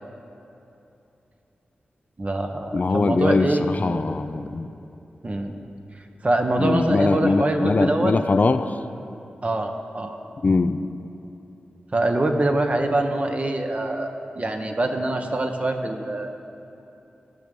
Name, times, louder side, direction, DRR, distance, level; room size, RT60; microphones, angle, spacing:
voice 1, 2.2-4.0 5.2-5.5 6.2-8.1 9.4-10.2 11.9-16.4, right 2 dB, 40° right, 4 dB, 1.0 m, -24 dB
voice 2, 2.7-4.7 6.6-8.8 10.4-10.8, left 3 dB, 50° left, 10 dB, 0.4 m, -21 dB
13.0 x 6.3 x 5.4 m, 2.8 s
cardioid pair, 45°, 4 cm